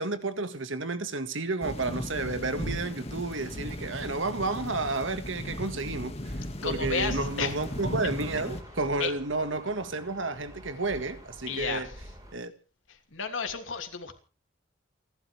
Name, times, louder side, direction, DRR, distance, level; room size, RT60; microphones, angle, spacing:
voice 1, 0.0-11.9 12.3-12.5, right 3 dB, 80° right, 2.0 m, -31 dB
sound 1, 1.6-8.6, left 1 dB, 30° left, 2.1 m, -36 dB
voice 2, 6.6-7.5 9.0-9.1 11.5-11.9 12.9-14.1, left 5 dB, 85° left, 2.9 m, -32 dB
sound 2, 7.1-12.4, equal, 20° right, 4.8 m, -48 dB
29.0 x 12.0 x 3.5 m
head